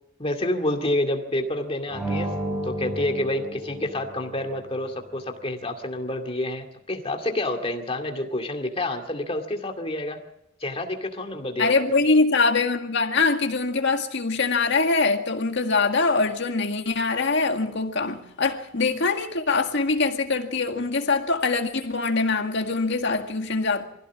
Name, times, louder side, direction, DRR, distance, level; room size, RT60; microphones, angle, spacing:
voice 1, 0.2-10.2 10.6-12.0, left 1 dB, 30° left, 2.3 m, -28 dB
sound 1, 1.9-4.6, right 1 dB, 5° right, 6.3 m, -31 dB
voice 2, 11.6-23.9, left 3 dB, 60° left, 1.9 m, -23 dB
24.0 x 16.0 x 7.4 m
head